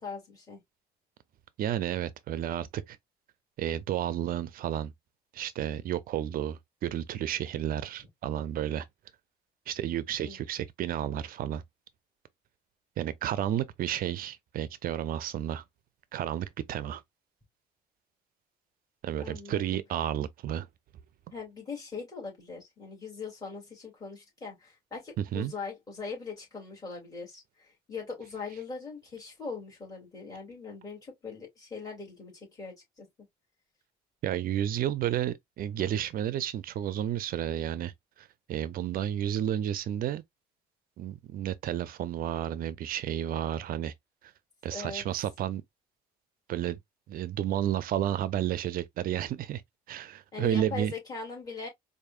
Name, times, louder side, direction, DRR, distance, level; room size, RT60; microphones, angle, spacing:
voice 1, 0.0-0.6 10.2-10.4 19.2-19.8 21.3-33.1 44.7-45.0 50.3-51.7, left 4 dB, 20° left, 2.7 m, -41 dB
voice 2, 1.6-3.0 3.6-4.9 5.3-8.9 9.7-11.6 13.0-15.6 16.1-17.0 19.0-20.7 25.2-25.5 34.2-37.9 38.2-40.2 41.0-43.9 44.6-45.6 46.5-46.8 47.1-49.6 49.9-50.9, right 11 dB, 60° right, 0.5 m, -31 dB
4.8 x 2.6 x 2.4 m
cardioid pair, 110°, 17 cm